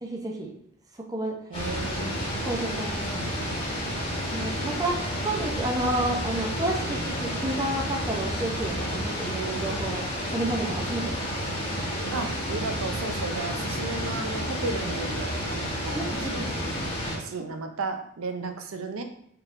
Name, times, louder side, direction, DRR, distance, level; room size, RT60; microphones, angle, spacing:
voice 1, 0.0-0.5 1.0-1.4 2.4-3.5 4.3-10.1 10.3-11.3 16.0-16.5, right 2 dB, 15° right, 0 dB, 0.6 m, -31 dB
sound 1, 1.5-17.2, equal, 25° left, 1.2 m, -30 dB
voice 2, 1.5-2.2 12.1-16.4 17.2-19.0, right 3 dB, 70° right, 6 dB, 0.5 m, -34 dB
4.5 x 3.5 x 2.5 m, 0.70 s
head